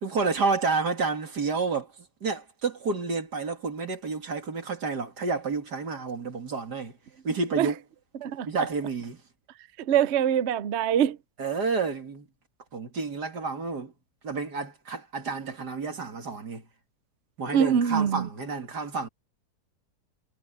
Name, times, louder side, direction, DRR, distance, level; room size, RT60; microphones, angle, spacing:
voice 1, 0.0-1.9 2.2-6.9 7.2-7.8 8.4-9.2 11.4-12.3 12.7-13.9 14.2-16.6 17.4-19.1, right 4 dB, 85° right, 3.1 m, -30 dB
voice 2, 8.2-8.7 9.9-11.2 17.5-18.3, right 9 dB, 55° right, 0.8 m, -24 dB
omnidirectional pair, 1.7 m